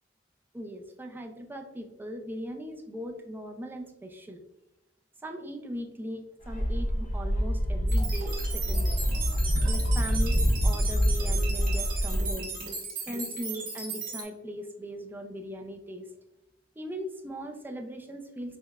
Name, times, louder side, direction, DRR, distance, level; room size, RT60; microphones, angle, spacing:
voice 1, 0.5-4.4 5.2-9.0 9.7-12.5 13.1-16.1 16.8-18.6, equal, 10° right, 3 dB, 0.3 m, -39 dB
sound 1, 6.4-12.3, equal, 40° left, 0.5 m, -26 dB
sound 2, 7.9-14.2, right 4 dB, 50° right, 1.1 m, -36 dB
5.2 x 2.1 x 2.3 m, 0.92 s
head